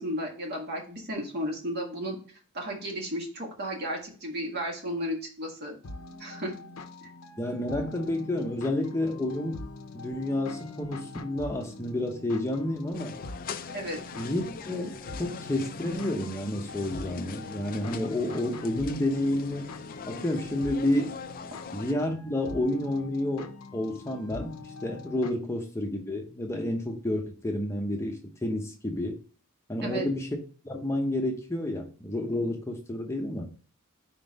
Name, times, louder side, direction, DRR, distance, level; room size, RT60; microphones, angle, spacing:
voice 1, 0.0-2.2 2.5-5.7 6.2-6.5 7.0-7.1 13.7-14.0 29.8-30.1, equal, 50° right, 1.8 m, -33 dB
sound 1, 5.8-25.3, left 3 dB, 80° left, 0.8 m, -43 dB
voice 2, 7.4-9.7 9.9-13.2 14.1-19.7 20.1-21.2 21.7-29.2 29.7-30.3 30.6-33.5, left 1 dB, 15° left, 0.8 m, -30 dB
sound 2, 12.9-21.9, left 5 dB, 40° left, 0.4 m, -42 dB
5.0 x 3.7 x 5.1 m
head